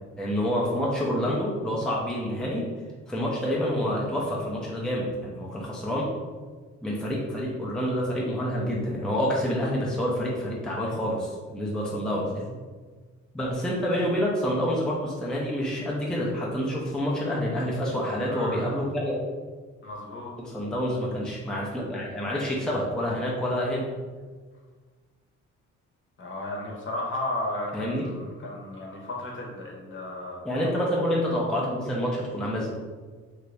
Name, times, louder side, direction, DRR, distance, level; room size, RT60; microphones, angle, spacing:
voice 1, 0.2-2.7 3.1-6.1 6.8-12.6 13.3-19.2 20.4-23.9 27.7-28.1 30.4-32.7, equal, ahead, -4 dB, 0.6 m, -28 dB
voice 2, 18.2-18.6 19.8-20.3 26.2-30.4, left 1 dB, 40° left, -2 dB, 0.9 m, -34 dB
2.8 x 2.5 x 3.3 m, 1.4 s
cardioid pair, 90°, 30 cm